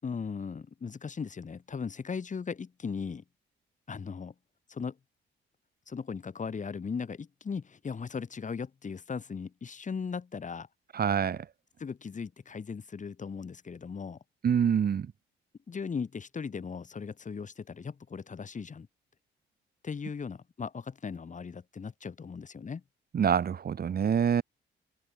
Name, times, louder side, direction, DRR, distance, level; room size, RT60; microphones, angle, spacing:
voice 1, 0.0-3.2 3.9-4.3 4.7-5.0 5.9-10.7 11.8-14.2 15.7-18.9 19.8-22.8, left 5 dB, 40° left, 6.8 m, -38 dB
voice 2, 10.9-11.5 14.4-15.1 23.1-24.4, right 8 dB, 50° right, 2.5 m, -26 dB
cardioid pair, 90°, 20 cm